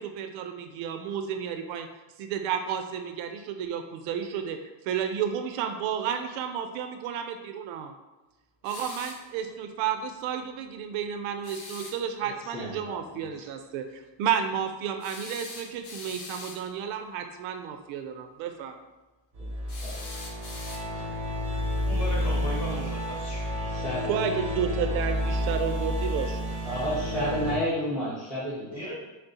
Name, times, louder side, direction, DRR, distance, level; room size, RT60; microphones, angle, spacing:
voice 1, 0.0-1.9 2.2-4.6 4.8-7.9 8.6-18.8 24.1-26.4, right 8 dB, 75° right, 6 dB, 0.5 m, -31 dB
sound 1, 8.6-9.3 11.4-12.0 15.0-16.7 19.7-21.1, left 3 dB, 55° left, 0.9 m, -42 dB
voice 2, 12.2-13.3 19.4-19.6 19.8-20.0 23.6-24.3 24.6-24.7 26.6-28.9, equal, ahead, -8 dB, 0.7 m, -32 dB
sound 2, 19.3-27.6, left 1 dB, 30° right, 0.7 m, -30 dB
voice 3, 21.8-23.7 28.7-28.9, equal, 30° left, -4 dB, 1.5 m, -37 dB
6.1 x 2.1 x 2.7 m, 1.1 s
cardioid pair, 135°, 48 cm